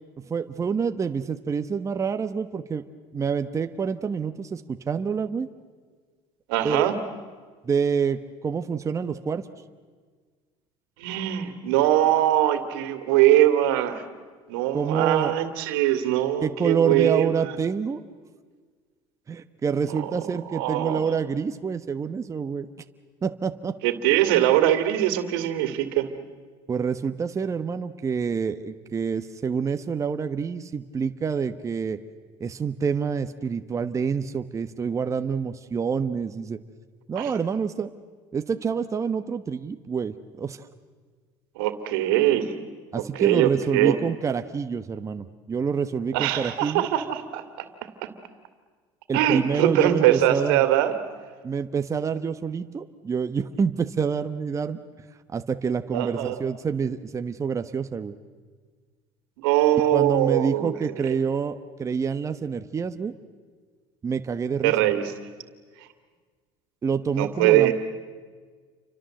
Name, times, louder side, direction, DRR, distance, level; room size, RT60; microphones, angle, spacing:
voice 1, 0.3-2.8 3.1-5.5 6.6-6.9 7.6-9.5 14.7-15.3 16.4-18.0 19.3-22.7 23.2-23.7 26.7-32.0 32.4-36.6 37.1-37.9 38.3-40.7 42.9-46.8 49.1-50.6 51.4-54.8 55.3-58.1 59.9-63.1 64.0-64.9 66.8-67.7, right 6 dB, 25° right, 9 dB, 1.2 m, -27 dB
voice 2, 6.5-6.9 11.0-14.0 14.5-17.3 19.9-21.0 23.8-26.1 37.2-37.3 41.6-42.5 43.1-44.0 46.1-47.7 49.1-51.0 55.9-56.4 59.4-61.1 64.6-65.1 67.2-67.7, right 13 dB, 90° right, 9 dB, 2.5 m, -22 dB
29.5 x 25.0 x 7.8 m, 1.5 s
supercardioid pair, 105°, 12 cm